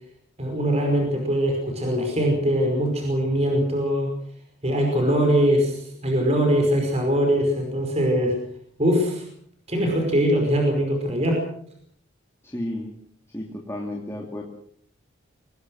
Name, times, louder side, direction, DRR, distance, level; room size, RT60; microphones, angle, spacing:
voice 1, 0.4-4.1 4.6-8.4 8.8-9.2 9.7-11.4, equal, 30° right, 2 dB, 5.2 m, -22 dB
voice 2, 12.4-12.9 13.3-14.4, left 1 dB, 15° left, -1 dB, 2.7 m, -32 dB
25.5 x 19.5 x 6.4 m, 0.62 s
head